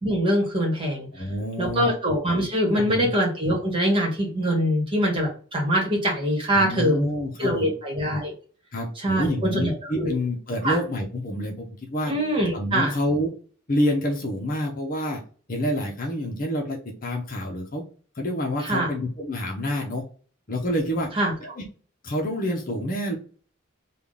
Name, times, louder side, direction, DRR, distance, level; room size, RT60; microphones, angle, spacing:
voice 1, 0.0-1.1 1.6-7.1 7.4-8.3 9.0-10.2 10.6-10.8 12.1-12.9 18.6-18.9 21.2-21.3, equal, 25° right, -1 dB, 1.4 m, -23 dB
voice 2, 1.1-1.9 2.7-3.1 6.5-7.7 8.7-12.1 12.5-13.3 13.7-15.2 15.5-17.8 18.1-20.0 20.5-21.1 21.4-21.6 22.0-23.2, left 1 dB, 40° left, 1 dB, 0.8 m, -28 dB
3.6 x 2.4 x 3.6 m, 0.40 s
head